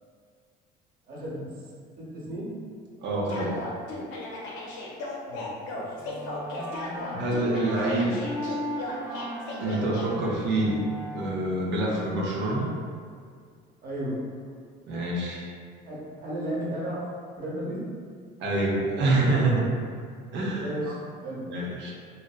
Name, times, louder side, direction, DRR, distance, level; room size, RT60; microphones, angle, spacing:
voice 1, 1.1-1.5 2.0-2.5 5.3-5.5 5.7-5.9 13.8-14.2 15.8-17.0 17.4-17.8 20.6-21.0 21.2-21.4, right 1 dB, 45° right, -6 dB, 0.9 m, -34 dB
voice 2, 3.0-3.6 7.1-8.2 9.6-10.8 11.1-12.7 14.9-15.4 18.4-19.7 20.3-21.0 21.5-21.9, right 2 dB, 65° right, -3 dB, 0.6 m, -26 dB
sound 1, 3.3-10.0, left 2 dB, 85° left, 0.5 m, -36 dB
Wind instrument woodwind instrument, 6.0-11.7, equal, 10° right, 0.3 m, -37 dB
2.6 x 2.0 x 2.3 m, 2.1 s
supercardioid pair, 80°, 20 cm